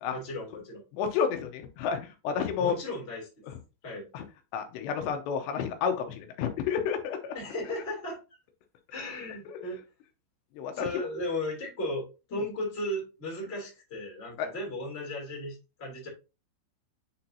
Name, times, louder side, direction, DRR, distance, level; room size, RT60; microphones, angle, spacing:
voice 1, 0.1-0.8 2.6-3.3 3.8-4.0 7.3-8.2 8.9-9.8 10.7-16.1, left 1 dB, 15° left, -3 dB, 2.3 m, -35 dB
voice 2, 0.9-2.7 4.1-4.2 4.5-7.4 9.5-9.6 10.6-10.9 14.4-14.5, left 7 dB, 80° left, 6 dB, 2.9 m, -30 dB
8.6 x 4.4 x 2.7 m, 0.30 s
omnidirectional pair, 5.4 m